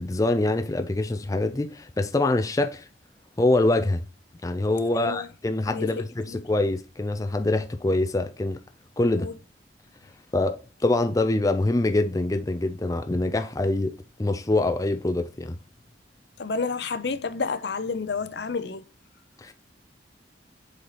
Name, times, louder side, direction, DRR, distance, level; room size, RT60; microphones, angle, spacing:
voice 1, 0.0-2.9 3.4-4.0 4.4-8.6 9.0-9.3 10.3-15.6 19.4-19.5, left 2 dB, 20° left, 0.4 m, -25 dB
voice 2, 4.9-5.3 5.7-6.4 9.1-9.3 16.4-18.8, left 4 dB, 65° left, 0.6 m, -30 dB
7.8 x 4.1 x 2.9 m
head